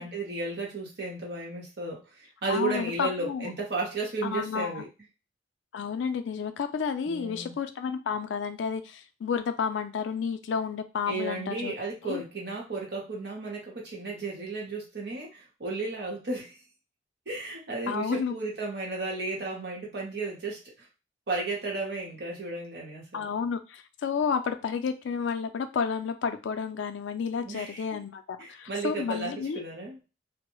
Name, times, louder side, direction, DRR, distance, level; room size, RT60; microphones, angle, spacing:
voice 1, 0.0-4.9 7.1-7.5 11.1-16.6 17.3-20.6 21.3-23.3 27.4-28.0 28.4-30.0, right 3 dB, 65° right, -2 dB, 0.9 m, -34 dB
voice 2, 2.5-3.5 4.2-4.8 5.7-11.7 12.0-12.2 17.9-18.3 23.1-29.6, left 6 dB, 85° left, 9 dB, 0.4 m, -31 dB
2.2 x 2.0 x 3.0 m, 0.30 s
head